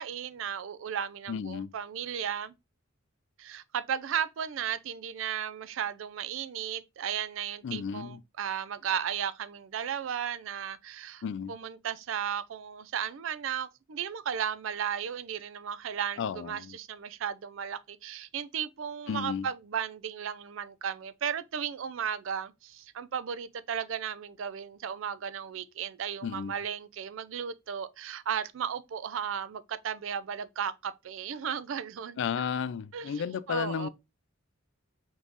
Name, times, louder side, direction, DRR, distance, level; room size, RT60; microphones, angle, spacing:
voice 1, 0.0-2.5 3.4-11.2 11.5-32.2 32.9-33.9, right 8 dB, 65° right, 0.4 m, -35 dB
voice 2, 1.3-1.7 7.6-8.2 11.2-11.6 16.2-16.8 19.1-19.5 26.2-26.5 32.2-33.9, left 7 dB, 60° left, 0.3 m, -33 dB
3.5 x 3.1 x 3.9 m
head